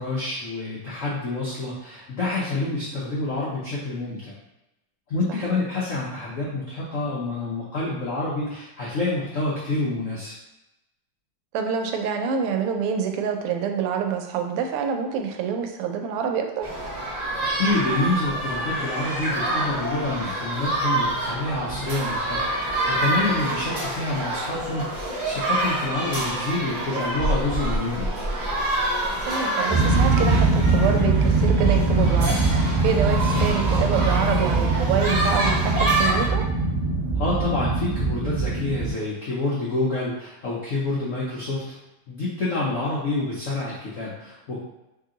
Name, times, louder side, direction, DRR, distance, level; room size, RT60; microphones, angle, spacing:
voice 1, 0.0-4.3 5.1-10.3 17.6-28.1 37.1-41.8 42.1-44.6, left 2 dB, 75° left, -6 dB, 0.7 m, -28 dB
voice 2, 11.5-16.7 29.3-36.4, right 7 dB, 90° right, 4 dB, 1.5 m, -27 dB
sound 1, 16.6-36.3, right 1 dB, 70° right, 0.4 m, -27 dB
sound 2, 29.7-38.9, right 3 dB, 20° right, 1.1 m, -22 dB
3.3 x 2.9 x 3.7 m, 0.94 s
omnidirectional pair, 2.4 m